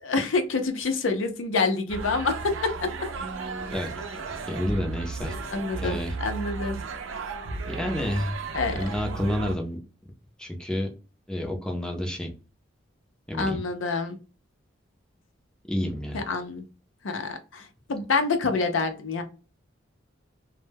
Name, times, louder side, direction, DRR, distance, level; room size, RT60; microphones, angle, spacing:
voice 1, 0.0-2.9 5.5-6.8 8.5-8.7 13.4-14.2 16.1-16.7 17.0-19.2, left 4 dB, 80° left, 7 dB, 0.5 m, -27 dB
sound 1, 1.9-9.6, right 4 dB, 85° right, 0.5 m, -34 dB
voice 2, 4.5-5.3 5.8-6.2 7.7-8.4 8.6-9.8 10.4-10.9 11.3-12.3 13.3-13.6 15.7-16.2, left 1 dB, 5° left, 2 dB, 0.5 m, -29 dB
2.1 x 2.1 x 3.2 m, 0.33 s
head